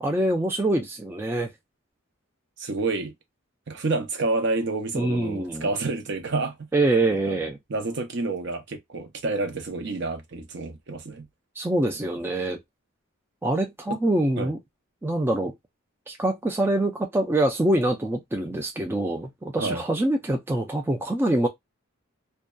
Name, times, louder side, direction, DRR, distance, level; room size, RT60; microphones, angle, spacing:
voice 1, 0.0-1.5 4.9-5.7 6.7-7.6 11.6-12.6 13.4-14.6 15.0-15.5 16.1-21.5, right 1 dB, 10° right, 0.3 m, -25 dB
voice 2, 2.6-3.1 3.7-6.5 7.3-7.4 7.7-11.2 13.9-14.0 14.4-14.5 19.6-19.8, right 3 dB, 60° right, 0.6 m, -29 dB
2.6 x 2.1 x 2.2 m
head